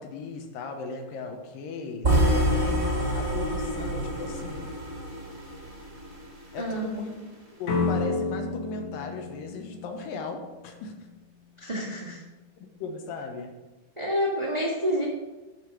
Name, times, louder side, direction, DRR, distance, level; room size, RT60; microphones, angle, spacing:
voice 1, 0.0-2.8 3.1-4.7 6.5-7.2 7.6-11.1 12.6-13.5, left 3 dB, 75° left, 4 dB, 2.7 m, -37 dB
sound 1, 2.0-6.2, right 1 dB, 40° right, 0.9 m, -26 dB
voice 2, 6.6-6.9 11.6-12.2 14.0-15.0, equal, 85° right, -4 dB, 0.3 m, -28 dB
sound 2, 7.7-10.6, left 3 dB, 55° left, 2.1 m, -30 dB
11.0 x 5.0 x 6.0 m, 1.1 s
omnidirectional pair, 4.2 m